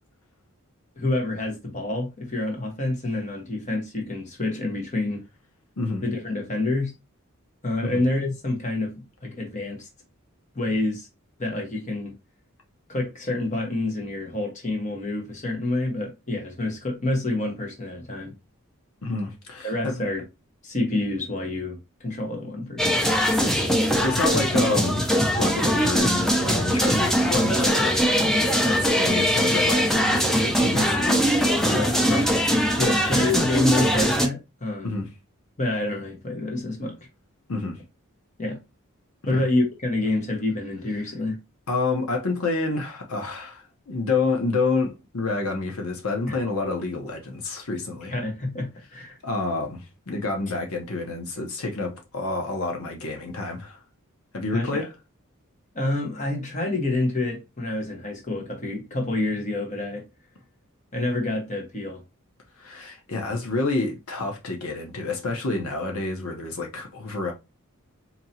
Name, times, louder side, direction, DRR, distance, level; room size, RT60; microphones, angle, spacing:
voice 1, 1.0-5.2 6.0-6.9 7.6-8.9 9.2-9.9 10.5-11.1 11.4-12.1 12.9-18.3 19.6-20.2 20.6-23.0 32.8-35.0 35.6-37.0 38.4-38.6 39.3-41.4 46.3-46.4 48.1-49.2 54.5-54.9 55.7-60.0 60.9-62.0, left 2 dB, 35° left, 1.2 m, -27 dB
voice 2, 19.0-20.1 23.4-25.1 25.4-32.4 32.6-32.7 34.8-35.1 37.5-37.8 39.2-39.4 41.7-48.1 49.2-53.8 54.3-54.9 62.6-67.3, left 3 dB, 80° left, 0.9 m, -29 dB
sound 1, 22.8-34.3, equal, ahead, 0.5 m, -21 dB
4.1 x 2.9 x 2.8 m
head